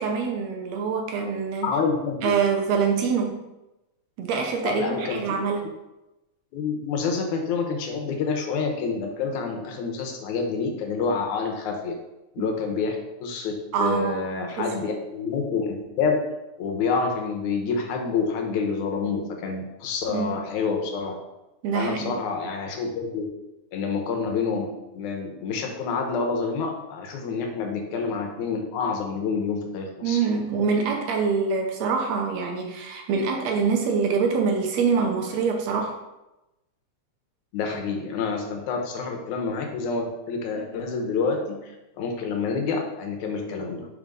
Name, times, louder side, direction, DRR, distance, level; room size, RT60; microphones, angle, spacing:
voice 1, 0.0-1.7 2.2-3.4 4.2-5.7 12.4-12.5 13.7-14.3 14.6-14.9 20.1-20.3 21.6-22.2 30.0-36.0 40.6-40.7, right 5 dB, 75° right, 2 dB, 1.9 m, -25 dB
voice 2, 1.6-2.3 4.6-5.2 6.5-11.9 12.4-16.2 16.6-21.1 21.7-23.3 23.7-24.7 24.9-30.2 37.5-43.9, left 5 dB, 85° left, 3 dB, 2.3 m, -28 dB
5.7 x 3.6 x 5.3 m, 0.96 s
omnidirectional pair, 3.3 m